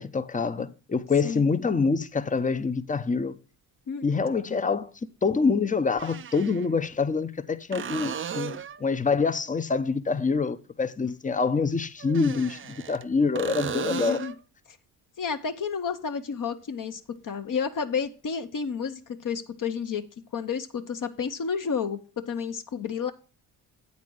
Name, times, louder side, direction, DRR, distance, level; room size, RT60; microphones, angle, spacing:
voice 1, 0.0-3.4 4.0-4.9 5.2-14.2, left 4 dB, 20° left, 0.6 m, -26 dB
voice 2, 1.2-1.6 3.9-4.0 4.5-4.7 11.0-11.1 13.9-14.3 15.2-20.0 20.3-22.0 22.2-23.1, left 6 dB, 45° left, 0.9 m, -31 dB
sound 1, 2.4-2.5 4.5-4.6 5.9-6.7 7.7-8.9 12.0-13.0 13.4-14.4 18.1-18.2, right 8 dB, 30° right, 0.5 m, -35 dB
8.3 x 4.2 x 6.1 m
supercardioid pair, 55°, 45 cm